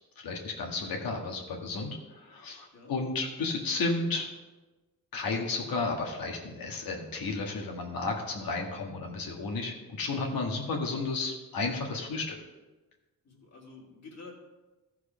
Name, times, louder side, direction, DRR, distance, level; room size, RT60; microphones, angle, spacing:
voice 1, 0.2-4.3 5.1-12.4, left 3 dB, 80° left, 1 dB, 1.9 m, -33 dB
voice 2, 13.2-14.3, left 4 dB, 50° left, -2 dB, 2.9 m, -49 dB
14.0 x 4.8 x 5.1 m, 1.1 s
cardioid pair, 90°, 35 cm